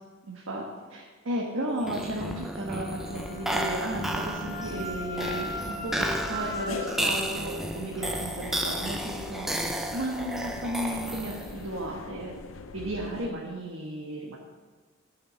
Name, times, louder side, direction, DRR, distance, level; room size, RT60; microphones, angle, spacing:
voice 1, 0.3-0.6 0.9-9.6 9.9-12.3 12.7-14.4, right 1 dB, 85° right, -2 dB, 1.4 m, -34 dB
sound 1, 1.8-11.7, right 1 dB, ahead, 0.6 m, -33 dB
Wind instrument woodwind instrument, 2.3-7.0, equal, 45° left, 2.4 m, -39 dB
sound 2, 3.0-13.3, left 4 dB, 80° left, 0.6 m, -42 dB
10.5 x 5.7 x 6.9 m, 1.4 s
head